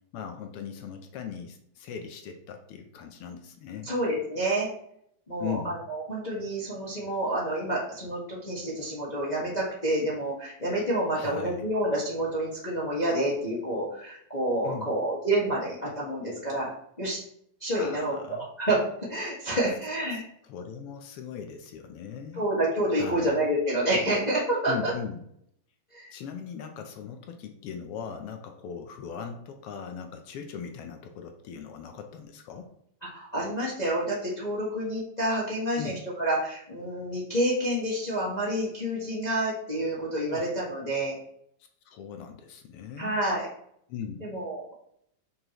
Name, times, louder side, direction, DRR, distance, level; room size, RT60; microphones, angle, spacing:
voice 1, 0.1-3.9 5.4-5.8 11.2-11.6 14.6-14.9 17.8-18.4 20.1-22.4 23.0-23.3 24.7-25.2 26.1-32.7 35.8-36.0 40.3-40.5 41.8-43.2 43.9-44.3, left 7 dB, 75° left, 5 dB, 1.3 m, -39 dB
voice 2, 3.8-4.7 5.3-16.7 17.0-17.2 17.6-18.8 19.1-20.2 22.3-24.9 25.9-26.1 33.1-41.2 43.0-43.5 44.2-44.7, right 1 dB, 30° left, -6 dB, 0.7 m, -28 dB
6.5 x 5.7 x 3.0 m, 0.70 s
omnidirectional pair, 3.3 m